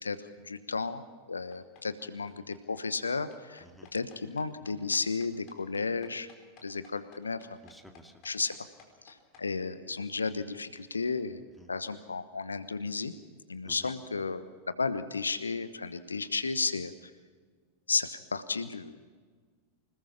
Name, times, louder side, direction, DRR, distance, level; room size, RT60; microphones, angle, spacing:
voice 1, 0.0-3.6 3.9-6.3 6.6-7.5 8.2-8.5 9.0-11.4 11.7-13.1 13.5-17.1 17.9-18.9, left 4 dB, 75° left, 13 dB, 1.1 m, -33 dB
sound 1, 1.5-9.4, left 7 dB, 40° left, 4.6 m, -57 dB
voice 2, 7.6-8.1 11.6-11.7 13.6-13.9, equal, 5° left, 4 dB, 2.2 m, -52 dB
26.0 x 19.5 x 5.8 m, 1.5 s
figure-of-eight pair, 90°, 0 cm